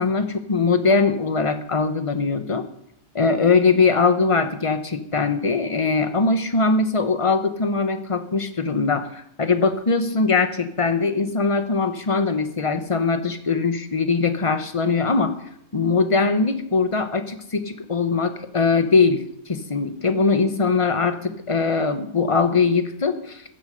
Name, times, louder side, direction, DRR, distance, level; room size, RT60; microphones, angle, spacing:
voice 1, 0.0-2.7 3.1-15.3 15.7-23.4, left 4 dB, 25° left, 9 dB, 1.0 m, -21 dB
15.5 x 11.5 x 5.2 m, 0.71 s
omnidirectional pair, 1.5 m